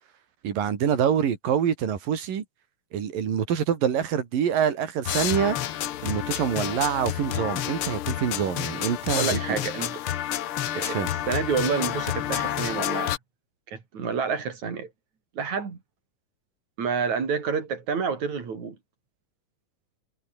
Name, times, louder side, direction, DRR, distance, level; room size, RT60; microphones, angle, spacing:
voice 1, 0.4-2.4 2.9-5.6 6.0-9.6 10.8-11.1, right 8 dB, 80° right, 4.5 m, -26 dB
sound 1, 5.0-13.2, left 12 dB, 90° left, 1.2 m, -29 dB
voice 2, 9.1-10.0 10.7-13.2 13.7-14.9 15.4-15.8 16.8-18.8, right 6 dB, 55° right, 5.4 m, -29 dB
omnidirectional pair, 3.9 m